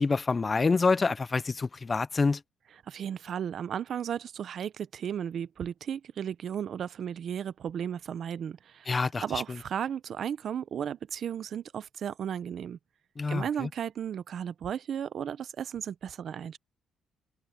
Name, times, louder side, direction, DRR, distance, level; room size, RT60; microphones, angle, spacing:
voice 1, 0.0-2.4 8.9-9.4 13.2-13.7, left 4 dB, 30° left, 0.5 m, -27 dB
voice 2, 2.9-8.9 9.2-12.8 13.3-16.6, right 8 dB, 60° right, 0.8 m, -35 dB
cardioid pair, 90°, 0 cm